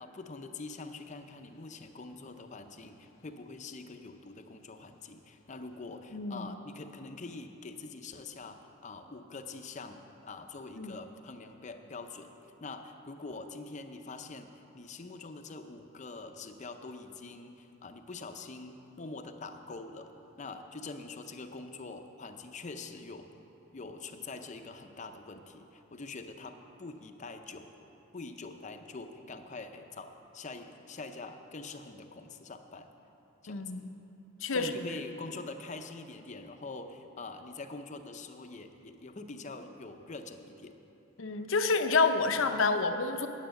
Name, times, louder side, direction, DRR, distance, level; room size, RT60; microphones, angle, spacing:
voice 1, 0.0-12.3 12.6-20.1 20.4-23.3 23.7-27.7 28.1-32.9 33.4-33.9 34.5-40.8, left 3 dB, 35° left, 6 dB, 0.6 m, -44 dB
voice 2, 6.1-6.5 10.8-10.9 33.5-33.9 34.4-34.7 41.2-43.3, left 4 dB, 80° left, 7 dB, 0.7 m, -28 dB
9.6 x 9.2 x 7.6 m, 2.9 s
head